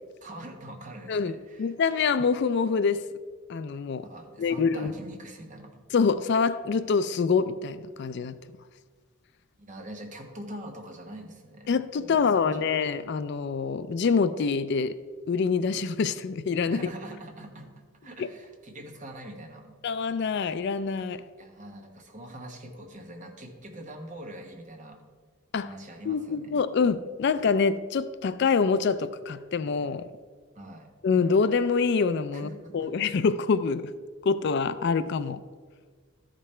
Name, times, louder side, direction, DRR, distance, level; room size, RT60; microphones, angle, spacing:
voice 1, 0.2-1.7 4.0-5.8 9.6-11.7 12.0-12.6 16.7-17.7 18.0-19.7 21.4-25.0 25.6-26.6 30.5-30.9 32.3-32.9, right 1 dB, 35° right, 2 dB, 1.2 m, -43 dB
voice 2, 1.1-3.0 3.5-4.1 4.4-4.9 5.9-8.4 11.7-15.0 15.3-16.8 18.2-18.3 19.8-21.2 25.5-25.7 26.1-30.1 31.0-33.9 34.2-35.4, left 5 dB, 55° left, 14 dB, 0.4 m, -25 dB
13.5 x 5.2 x 4.3 m, 1.5 s
head